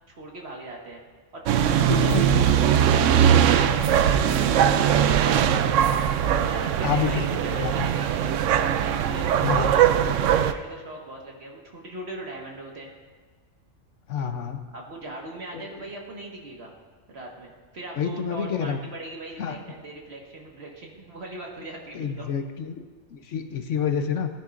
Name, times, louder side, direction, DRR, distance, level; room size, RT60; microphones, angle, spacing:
voice 1, 0.2-1.0 1.3-1.5 1.8-3.2 3.5-6.0 6.4-8.2 8.8-12.9 14.7-16.7 17.1-22.3, right 1 dB, 55° right, -1 dB, 1.9 m, -39 dB
sound 1, 1.5-10.5, right 9 dB, 75° right, 0.9 m, -21 dB
voice 2, 1.9-2.4 6.8-7.2 7.5-7.9 9.4-9.7 14.1-14.6 15.5-15.6 18.0-18.8 19.4-19.6 21.9-22.8 23.1-24.3, left 7 dB, 70° left, 6 dB, 1.1 m, -28 dB
17.0 x 10.0 x 2.6 m, 1.5 s
omnidirectional pair, 1.3 m